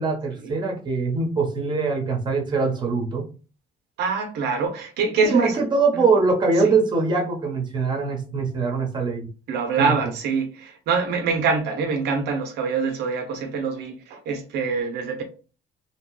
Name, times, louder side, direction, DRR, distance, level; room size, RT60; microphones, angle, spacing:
voice 1, 0.0-3.3 5.2-9.3 9.8-10.0, right 4 dB, 25° right, 1.0 m, -22 dB
voice 2, 4.0-5.7 5.9-6.0 9.5-15.2, right 5 dB, 80° right, 0.6 m, -25 dB
2.9 x 2.2 x 3.1 m
cardioid pair, 110°, 17 cm